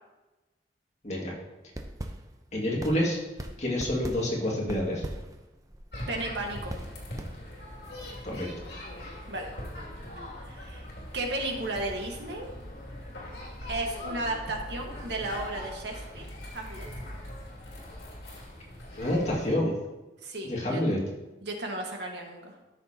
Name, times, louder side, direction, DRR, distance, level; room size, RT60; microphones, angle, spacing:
sound 1, 1.6-7.9, right 1 dB, 20° right, 0.6 m, -41 dB
voice 1, 2.5-3.2 3.6-5.0 8.2-8.7 19.0-19.7 20.4-21.0, left 1 dB, 40° left, -3 dB, 2.0 m, -28 dB
sound 2, 5.9-19.5, left 1 dB, 75° left, 2.5 m, -41 dB
voice 2, 6.1-6.7 9.3-9.5 10.4-10.9 11.1-12.5 13.7-16.3 16.5-16.9 20.2-20.8 21.4-22.5, right 2 dB, 80° right, 1 dB, 1.6 m, -34 dB
13.5 x 6.7 x 2.9 m, 1.1 s
head